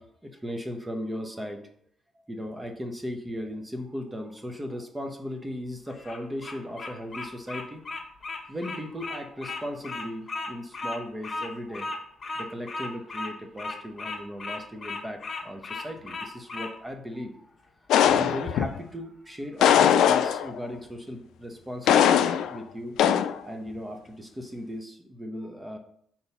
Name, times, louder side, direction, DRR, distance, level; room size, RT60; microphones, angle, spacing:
voice 1, 0.0-1.6 2.2-7.8 8.5-11.9 12.4-17.5 18.1-22.9 23.4-25.8, equal, 15° right, 4 dB, 1.0 m, -37 dB
Bird vocalization bird call bird song, 5.9-16.7, left 3 dB, 40° left, 1.1 m, -36 dB
sound 1, 17.9-18.8 19.6-20.7 21.9-22.6 23.0-23.4, left 9 dB, 80° left, 0.3 m, -20 dB
4.2 x 4.0 x 5.5 m, 0.66 s
cardioid pair, 90°, 0 cm